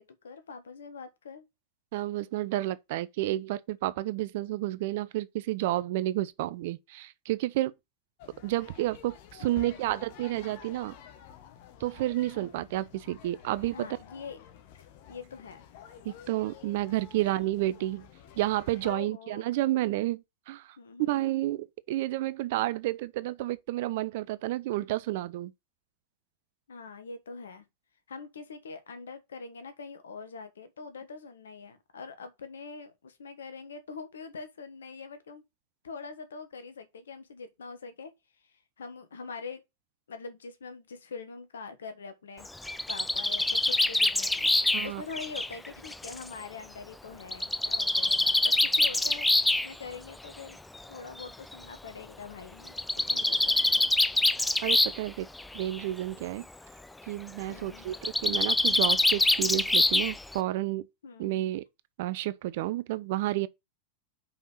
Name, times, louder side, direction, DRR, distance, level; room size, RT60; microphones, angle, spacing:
voice 1, 0.0-1.4 9.4-10.0 13.7-14.4 15.1-15.6 17.2-17.3 18.8-19.4 20.8-21.2 26.7-27.6 28.1-35.4 35.8-38.1 38.4-39.6 40.1-42.5 42.9-49.3 49.6-50.6 50.9-52.7 53.0-53.9 57.5-57.9 61.0-61.4, left 5 dB, 65° left, 1.4 m, -44 dB
voice 2, 1.9-7.7 8.4-11.0 11.8-13.9 16.0-18.1 18.4-25.5 44.7-45.0 54.6-55.3 55.5-56.5 57.1-60.9 61.2-61.6 62.0-63.5, right 16 dB, 50° right, 0.5 m, -31 dB
sound 1, 8.2-18.9, left 9 dB, 50° left, 1.2 m, -50 dB
Bird, 42.4-46.2 47.3-49.7 50.7-50.8 51.2-51.3 51.5-51.6 52.7-55.1 55.4-55.8 57.9-60.4, left 2 dB, 5° left, 0.4 m, -25 dB
5.5 x 5.0 x 5.5 m
figure-of-eight pair, 90°, 0 cm